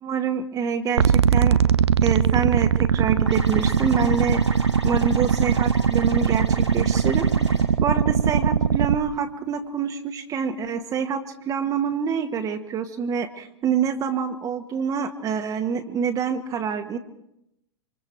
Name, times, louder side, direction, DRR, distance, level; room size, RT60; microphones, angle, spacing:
voice 1, 0.0-1.6 2.0-4.4 4.8-17.0, right 6 dB, 25° right, 5 dB, 1.6 m, -26 dB
sound 1, 1.0-9.0, right 7 dB, 70° right, 0.8 m, -20 dB
sound 2, 3.3-7.6, right 1 dB, 85° right, 5.7 m, -36 dB
27.0 x 25.5 x 4.6 m, 0.80 s
figure-of-eight pair, 100°, 15 cm